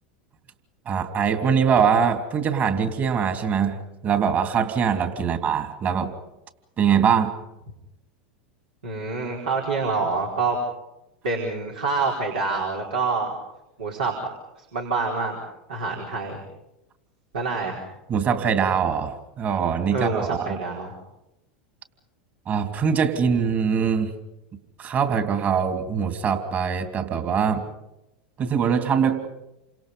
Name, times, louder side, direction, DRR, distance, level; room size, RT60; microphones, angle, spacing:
voice 1, 0.8-6.1 6.8-7.3 18.1-20.6 22.5-24.1 24.8-27.6 28.4-29.3, right 7 dB, 35° right, 6 dB, 3.1 m, -23 dB
voice 2, 8.8-10.6 11.2-13.3 13.8-14.3 14.6-15.4 15.7-16.4 17.3-17.8 19.9-20.9, right 4 dB, 85° right, -2 dB, 4.6 m, -26 dB
29.0 x 26.0 x 5.5 m, 0.92 s
hypercardioid pair, 95°, 5 cm